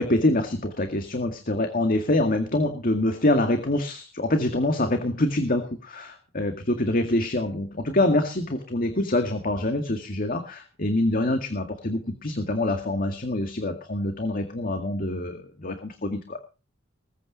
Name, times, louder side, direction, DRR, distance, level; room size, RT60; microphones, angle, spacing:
voice 1, 0.0-16.4, left 1 dB, 50° left, 6 dB, 2.0 m, -25 dB
21.0 x 8.9 x 5.2 m, 0.33 s
head